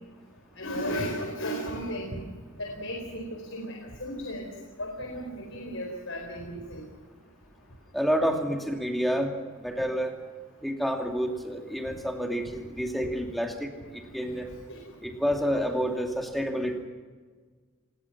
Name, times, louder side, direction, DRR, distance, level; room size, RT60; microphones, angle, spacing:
voice 1, 0.6-2.2 2.6-3.2 3.5-4.5 4.8-6.8 14.7-14.8 15.5-15.6, equal, 70° left, 1 dB, 4.5 m, -34 dB
voice 2, 7.9-9.3 9.6-10.1 10.6-14.5 15.0-16.7, equal, ahead, 2 dB, 2.6 m, -29 dB
27.0 x 21.0 x 6.1 m, 1.5 s
head